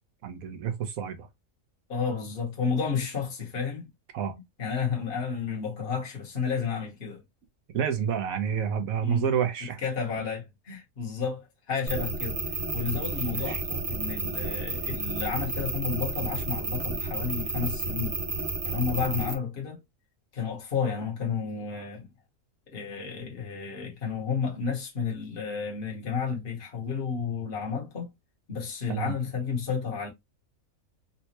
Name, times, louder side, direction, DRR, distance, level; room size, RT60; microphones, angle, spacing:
voice 1, 0.2-1.3 4.1-4.3 7.7-9.8 13.3-13.6 28.9-29.1, right 8 dB, 90° right, 1.2 m, -29 dB
voice 2, 1.9-3.9 4.6-7.2 9.0-9.3 9.8-12.4 12.7-18.2 18.6-19.8 20.3-22.1 22.7-28.1 28.5-30.1, left 6 dB, 45° left, 1.3 m, -31 dB
sound 1, 11.9-19.3, right 3 dB, 30° right, 0.9 m, -31 dB
4.1 x 2.2 x 2.8 m
omnidirectional pair, 1.4 m